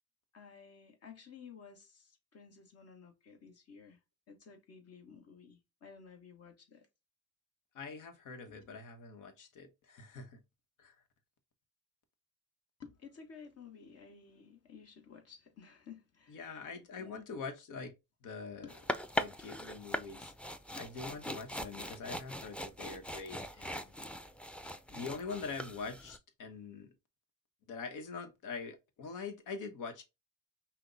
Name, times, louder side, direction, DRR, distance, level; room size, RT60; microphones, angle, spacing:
voice 1, 0.3-4.0 4.3-6.9 8.5-8.6 12.8-16.7 17.0-17.2 18.6-18.7, left 6 dB, 55° left, 1.4 m, -54 dB
voice 2, 7.7-10.4 10.8-10.9 16.3-17.9 18.2-18.7 19.2-20.3 20.7-23.9 24.9-26.9 27.7-30.0, left 4 dB, 90° left, 1.1 m, -44 dB
sound 1, 18.7-26.2, equal, 5° left, 0.5 m, -41 dB
5.7 x 2.3 x 3.9 m
cardioid pair, 90°, 30 cm